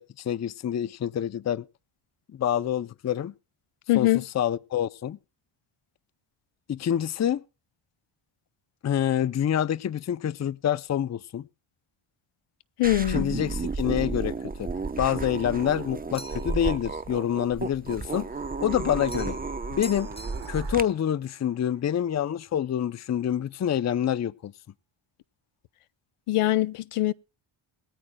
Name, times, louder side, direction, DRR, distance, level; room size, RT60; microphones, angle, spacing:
voice 1, 0.0-1.6 2.3-3.3 3.9-5.2 6.7-7.4 8.8-11.5 13.1-14.7 15.0-18.3 18.6-19.4 19.7-20.1 20.5-24.5, left 10 dB, 35° left, 0.5 m, -27 dB
voice 2, 3.9-4.2 12.8-13.3 26.3-27.1, left 16 dB, 85° left, 0.8 m, -23 dB
sound 1, 12.8-20.8, right 4 dB, 15° right, 0.8 m, -32 dB
sound 2, 16.1-16.6 19.1-19.5 19.8-20.8, left 1 dB, 10° left, 1.3 m, -44 dB
sound 3, 18.0-22.7, right 8 dB, 65° right, 3.3 m, -52 dB
21.5 x 13.5 x 2.2 m
wide cardioid pair, 140°, 50 cm